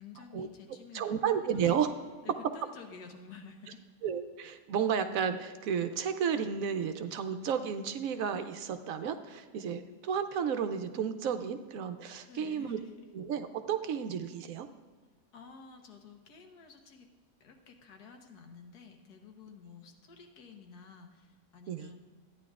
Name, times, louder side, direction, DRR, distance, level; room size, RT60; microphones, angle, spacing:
voice 1, 0.0-1.7 2.2-3.8 12.3-12.9 15.3-17.1 17.4-22.0, left 5 dB, 80° left, 4 dB, 1.6 m, -51 dB
voice 2, 0.9-1.9 4.0-12.8 13.1-14.7 21.7-21.9, right 7 dB, 70° right, 9 dB, 0.9 m, -32 dB
13.5 x 9.7 x 2.4 m, 1.5 s
omnidirectional pair, 1.7 m